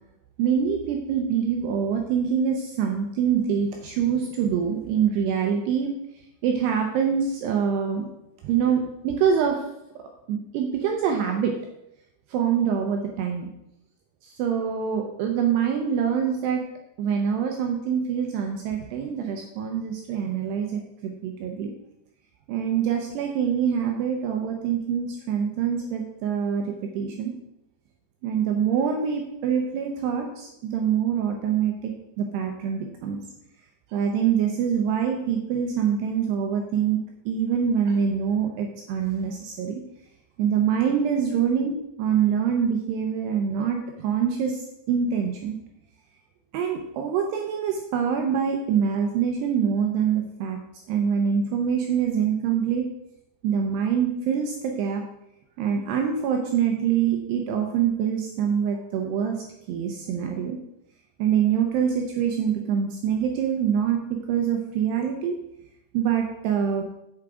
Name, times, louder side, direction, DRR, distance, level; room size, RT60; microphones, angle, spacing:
voice 1, 0.4-5.9 6.4-8.1 8.4-9.6 10.3-11.6 12.3-13.5 14.2-16.6 17.0-21.7 22.5-27.3 28.2-33.2 33.9-37.0 37.3-39.8 40.4-45.6 46.5-50.6 50.9-52.9 53.4-55.0 55.6-60.6 61.2-65.4 65.9-66.8, right 7 dB, 75° right, 2 dB, 2.6 m, -25 dB
7.9 x 7.1 x 4.9 m, 0.84 s
omnidirectional pair, 5.4 m